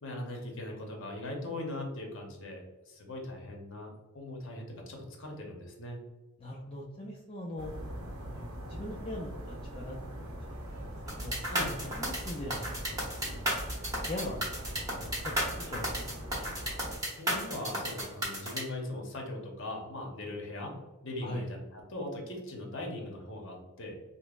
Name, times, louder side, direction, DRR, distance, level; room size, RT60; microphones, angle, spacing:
voice 1, 0.0-6.0 11.4-11.7 17.1-20.8 21.0-23.9, left 1 dB, 60° left, 0 dB, 0.9 m, -40 dB
voice 2, 6.4-7.7 8.2-11.4 11.8-13.5 13.8-14.5 15.0-16.6 21.2-21.5, left 1 dB, 25° left, -2 dB, 0.4 m, -42 dB
sound 1, 7.6-17.0, equal, 80° right, 0.8 m, -42 dB
sound 2, 11.1-18.6, right 1 dB, 15° right, 0.9 m, -33 dB
5.4 x 2.0 x 2.4 m, 1.2 s
head